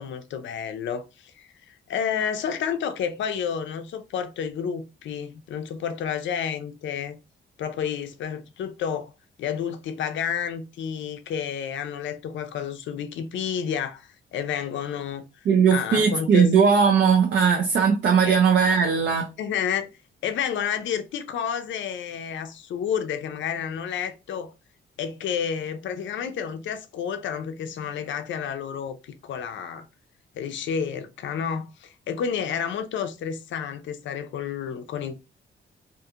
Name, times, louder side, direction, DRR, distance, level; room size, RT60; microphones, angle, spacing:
voice 1, 0.0-7.2 7.6-9.1 9.4-15.2 15.7-16.5 18.2-18.4 19.4-19.9 20.2-24.5 25.0-29.9 30.4-35.1, left 7 dB, 70° left, 0.4 m, -30 dB
voice 2, 15.5-19.3, right 6 dB, 60° right, 0.5 m, -19 dB
2.5 x 2.4 x 2.7 m
wide cardioid pair, 175°, 20 cm